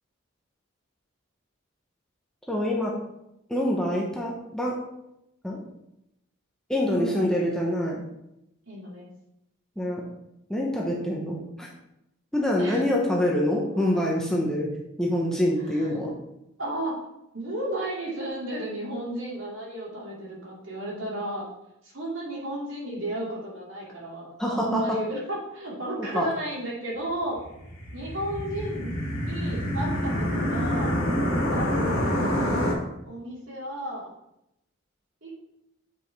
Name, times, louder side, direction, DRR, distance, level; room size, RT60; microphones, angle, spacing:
voice 1, 2.5-2.9 3.5-4.8 5.4-5.6 6.7-8.0 9.8-10.0 10.5-11.7 12.3-14.7 15.0-16.1 24.4-25.0 26.1-26.3, left 1 dB, 5° left, -3 dB, 0.9 m, -25 dB
voice 2, 6.9-7.3 8.7-9.1 12.6-13.2 13.7-13.8 15.6-16.2 16.6-17.0 17.3-21.5 21.8-27.4 27.9-28.9 29.2-30.9 31.5-32.1 33.1-34.1 35.2-35.3, right 1 dB, 65° right, -4 dB, 2.5 m, -33 dB
sound 1, 27.5-32.7, equal, 75° left, 2.2 m, -27 dB
8.1 x 4.9 x 3.4 m, 0.84 s
head